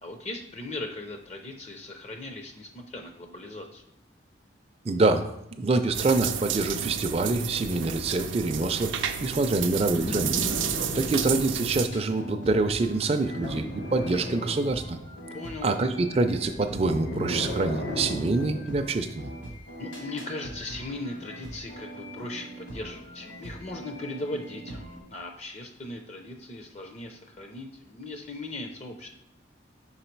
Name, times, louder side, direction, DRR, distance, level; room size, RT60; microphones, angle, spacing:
voice 1, 0.0-3.8 15.3-15.7 19.8-29.1, left 2 dB, 35° left, 4 dB, 0.5 m, -38 dB
voice 2, 4.9-5.3 5.6-10.4 10.9-15.0 15.6-19.3, right 3 dB, 30° right, 6 dB, 0.4 m, -26 dB
sound 1, 5.9-11.9, right 8 dB, 90° right, 0.5 m, -31 dB
sound 2, 9.7-11.7 13.4-15.1 16.4-18.7 20.1-20.2, equal, 50° left, 0.9 m, -34 dB
sound 3, 11.8-25.0, right 1 dB, 85° left, 2.5 m, -42 dB
5.9 x 4.0 x 4.5 m, 0.81 s
head